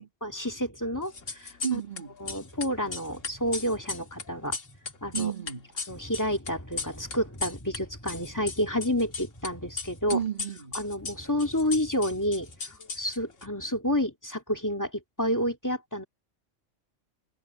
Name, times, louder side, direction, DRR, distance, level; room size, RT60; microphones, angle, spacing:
voice 1, 0.2-1.8 2.2-5.3 5.9-10.2 10.7-16.0, equal, 15° left, 2.2 m, -30 dB
sound 1, 1.1-2.0 2.3-7.8 8.1-9.5 9.8-13.5, left 4 dB, 80° left, 2.2 m, -36 dB
voice 2, 1.6-2.1 5.1-5.7 10.1-10.8, right 8 dB, 40° right, 2.4 m, -32 dB
omnidirectional pair, 1.3 m